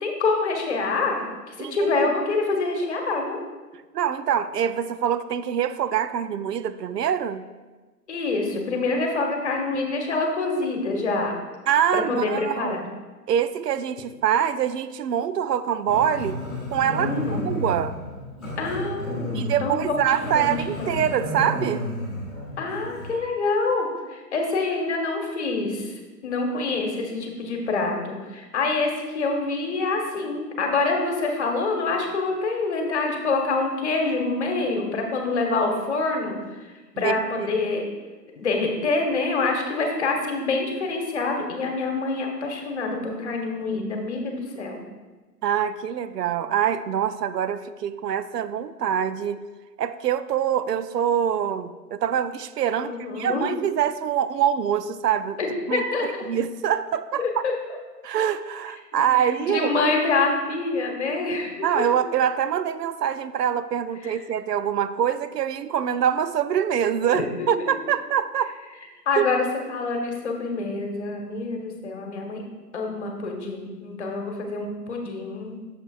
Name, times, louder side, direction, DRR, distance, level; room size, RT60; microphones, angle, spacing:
voice 1, 0.0-3.4 8.1-11.4 11.9-12.9 17.0-17.5 18.6-19.8 20.3-21.0 22.6-36.6 37.0-37.8 38.4-44.8 52.8-53.5 55.4-56.1 57.2-57.5 58.9-61.9 64.0-64.2 67.1-67.7 69.1-72.4 72.7-75.6, left 3 dB, 45° left, 2 dB, 1.2 m, -26 dB
voice 2, 1.6-1.9 3.9-7.4 11.7-12.8 13.3-16.4 16.7-17.1 17.4-18.0 19.3-21.8 37.0-37.5 45.4-49.4 49.8-55.4 55.7-57.3 58.0-59.7 61.6-68.5 69.2-69.3, right 9 dB, 75° right, 13 dB, 0.5 m, -24 dB
Growling, 15.9-23.2, equal, ahead, 1.5 m, -32 dB
8.6 x 6.8 x 2.4 m, 1.3 s
hypercardioid pair, 165°, 49 cm